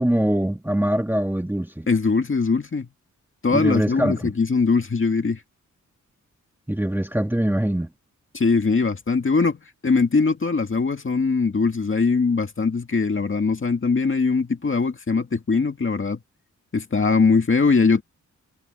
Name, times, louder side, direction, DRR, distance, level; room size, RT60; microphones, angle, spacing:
voice 1, 0.0-1.9 3.5-4.3 6.7-7.9, right 1 dB, 5° right, 1.6 m, -23 dB
voice 2, 1.9-2.9 3.4-5.4 8.3-16.2 16.7-18.0, left 4 dB, 40° left, 2.1 m, -21 dB
wide cardioid pair, 140°, 31 cm